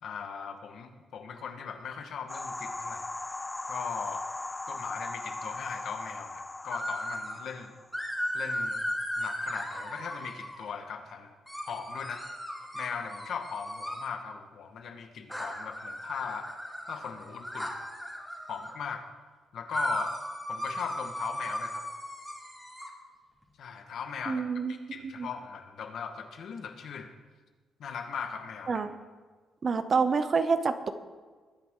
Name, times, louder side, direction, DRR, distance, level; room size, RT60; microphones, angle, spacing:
voice 1, 0.0-3.1 3.7-4.2 4.7-7.8 8.3-8.9 9.2-11.3 11.6-12.2 12.7-16.5 16.9-17.7 18.5-19.1 19.5-20.1 20.5-21.8 23.6-27.1 27.8-28.8, left 6 dB, 60° left, 5 dB, 1.5 m, -39 dB
sound 1, 2.3-8.0, left 2 dB, 15° left, 0.3 m, -39 dB
sound 2, 6.7-7.4 7.9-10.7 11.5-14.1 15.3-18.7 19.7-22.9, equal, ahead, 2.2 m, -36 dB
voice 2, 24.3-24.7 25.0-25.3 28.7-28.9 29.6-30.9, right 5 dB, 35° right, 11 dB, 0.7 m, -27 dB
21.0 x 9.3 x 3.8 m, 1.4 s
cardioid pair, 140°, 0 cm